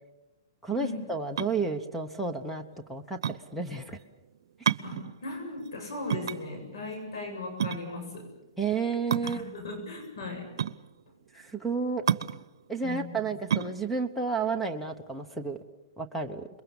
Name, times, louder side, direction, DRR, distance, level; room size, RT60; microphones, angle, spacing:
voice 1, 0.6-2.6 2.9-4.0 8.6-9.5 11.3-12.0 12.7-15.6 16.0-16.5, right 4 dB, ahead, 5 dB, 1.0 m, -31 dB
sound 1, 1.2-15.6, right 8 dB, 80° right, 0.8 m, -33 dB
voice 2, 4.8-8.3 9.2-10.5 12.8-13.3, left 3 dB, 80° left, 5 dB, 7.4 m, -37 dB
28.0 x 22.0 x 7.2 m, 1.0 s
hypercardioid pair, 155°, 2 cm